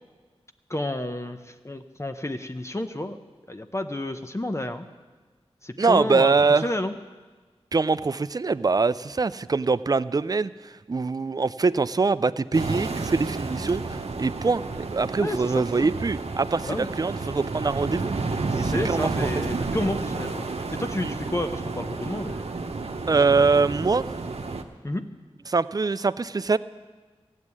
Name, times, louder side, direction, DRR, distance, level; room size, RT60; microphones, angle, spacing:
voice 1, 0.7-3.2 3.5-4.9 5.6-7.0 15.2-15.9 16.7-16.9 18.5-20.5 20.8-22.4 24.8-25.0, left 1 dB, 25° left, 7 dB, 0.8 m, -30 dB
voice 2, 5.8-6.7 7.7-10.5 10.9-18.1 18.6-19.1 19.5-19.7 21.0-21.1 23.1-24.0 25.5-26.6, right 4 dB, 35° right, 15 dB, 0.4 m, -23 dB
sound 1, 12.5-24.6, right 3 dB, 70° right, 0.9 m, -31 dB
14.5 x 7.4 x 9.6 m, 1.4 s
cardioid pair, 40°, 11 cm